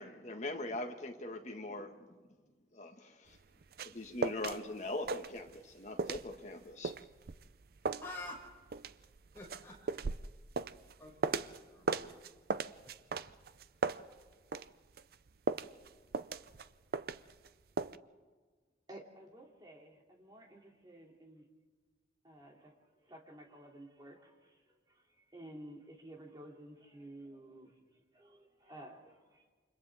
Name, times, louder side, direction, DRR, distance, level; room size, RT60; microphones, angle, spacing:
voice 1, 0.0-2.0 2.7-3.4 3.8-6.9, left 2 dB, 40° left, 1.9 m, -41 dB
sound 1, 3.3-4.6 4.9-5.7 6.0-11.6 11.9-14.7 15.0-17.5 17.8-18.0, right 4 dB, 55° right, 0.5 m, -37 dB
voice 2, 8.0-8.5 9.3-9.7 11.0-12.1, left 2 dB, 15° left, 6.3 m, -48 dB
voice 3, 18.9-21.4 22.2-22.7 23.1-24.3 25.3-27.7 28.1-29.5, right 1 dB, 25° right, 3.0 m, -52 dB
29.0 x 26.5 x 3.7 m
head